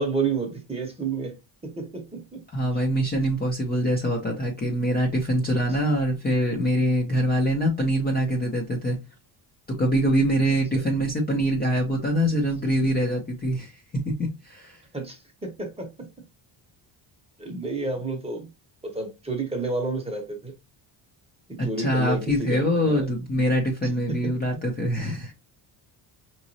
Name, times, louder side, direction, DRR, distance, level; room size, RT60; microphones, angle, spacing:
voice 1, 0.0-1.4 1.6-2.4 10.7-10.8 11.4-11.5 14.9-16.1 17.4-18.5 18.8-20.5 21.5-23.1 24.1-24.3, right 3 dB, 10° right, 0.9 m, -30 dB
voice 2, 2.5-9.0 9.8-14.8 21.6-25.3, equal, 20° left, 0.6 m, -24 dB
4.9 x 3.1 x 2.7 m
cardioid pair, 165°, 48 cm